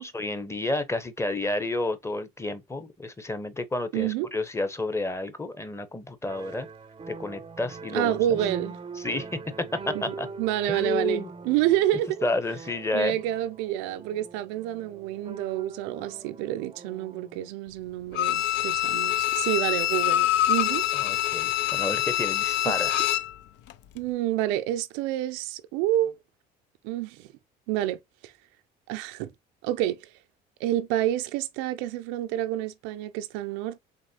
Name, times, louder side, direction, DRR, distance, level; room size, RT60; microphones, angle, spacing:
voice 1, 0.0-6.7 7.1-8.4 9.0-9.3 9.9-10.3 10.7-11.3 12.2-13.2 20.9-23.0, left 2 dB, 15° left, 0.9 m, -30 dB
voice 2, 3.9-4.3 7.9-8.8 9.9-12.2 12.9-20.8 23.9-26.2 26.8-27.3 27.7-28.3 28.9-29.3 29.6-30.1 30.6-33.8, right 13 dB, 80° right, 0.5 m, -28 dB
sound 1, 6.2-17.5, right 4 dB, 25° right, 0.5 m, -43 dB
Bowed string instrument, 18.1-23.4 23.7-23.8, left 13 dB, 65° left, 0.4 m, -25 dB
4.0 x 3.1 x 2.8 m
supercardioid pair, 70°, 20 cm